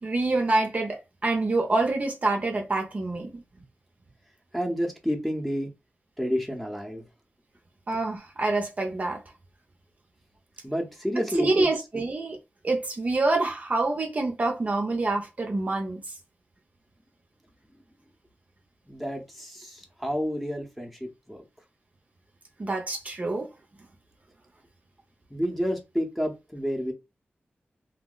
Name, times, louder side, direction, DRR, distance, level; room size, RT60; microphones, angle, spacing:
voice 1, 0.0-3.4 7.9-9.2 11.4-12.4 12.6-16.0 22.6-23.5, right 2 dB, 40° right, 0.6 m, -26 dB
voice 2, 4.5-5.7 6.2-7.0 10.6-11.7 11.9-12.0 18.9-21.4 25.3-26.9, equal, 5° left, 0.8 m, -30 dB
2.8 x 2.0 x 3.8 m
wide cardioid pair, 130°, 4 cm